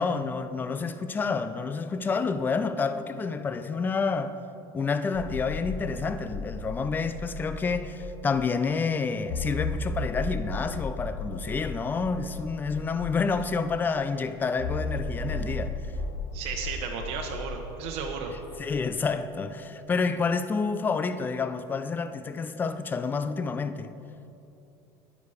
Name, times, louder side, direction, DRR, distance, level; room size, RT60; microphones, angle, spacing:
voice 1, 0.0-4.4 4.7-15.8 18.6-23.9, left 4 dB, 15° left, 0.4 m, -29 dB
sound 1, 5.1-8.4 8.7-8.8 9.2-13.8 14.6-18.9, left 2 dB, 75° left, 1.2 m, -35 dB
voice 2, 16.3-18.3, right 6 dB, 60° right, 1.0 m, -34 dB
10.5 x 9.8 x 5.0 m
cardioid pair, 150°, 12 cm